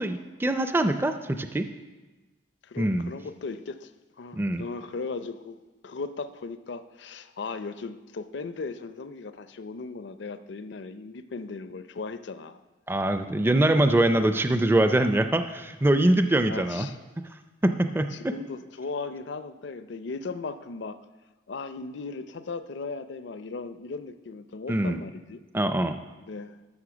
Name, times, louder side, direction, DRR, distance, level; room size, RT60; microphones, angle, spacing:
voice 1, 0.0-1.6 2.8-3.1 4.3-4.6 12.9-16.9 17.6-18.1 24.7-25.0 25.5-26.0, right 1 dB, 10° right, 8 dB, 0.4 m, -23 dB
voice 2, 2.6-3.9 4.2-12.6 16.5-17.0 17.9-21.0 21.5-25.4 26.3-26.6, left 4 dB, 65° left, 11 dB, 0.5 m, -37 dB
13.0 x 6.3 x 6.1 m, 1.2 s
head